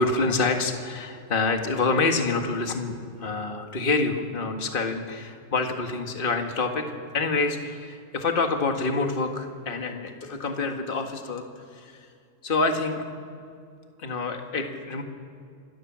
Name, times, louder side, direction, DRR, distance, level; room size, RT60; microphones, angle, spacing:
voice 1, 0.0-6.9 7.1-11.4 11.7-12.1 12.4-13.0 14.0-15.0, left 3 dB, 35° left, 4 dB, 1.9 m, -27 dB
26.5 x 16.5 x 7.5 m, 2.4 s
omnidirectional pair, 1.6 m